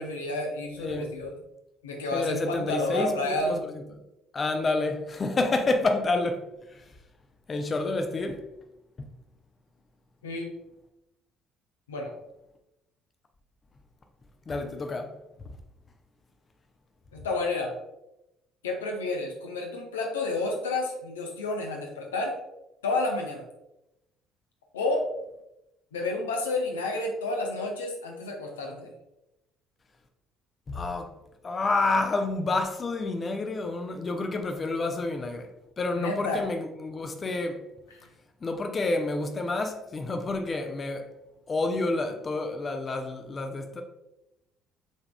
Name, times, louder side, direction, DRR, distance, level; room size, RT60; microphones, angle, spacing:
voice 1, 0.0-1.3 1.8-3.6 10.2-10.5 11.9-12.1 17.1-17.8 18.6-22.4 22.8-23.5 24.7-25.1 25.9-28.9 35.9-36.5 37.9-38.1, left 2 dB, 75° left, 0.6 m, -30 dB
voice 2, 2.1-3.7 4.3-6.5 6.7-6.8 7.5-8.4 9.0-9.1 14.5-15.1 30.7-31.1 31.4-35.5 35.8-37.6 38.4-41.1 41.5-43.8, left 2 dB, 30° left, 0.6 m, -29 dB
6.2 x 3.6 x 2.2 m
figure-of-eight pair, 55°, 0 cm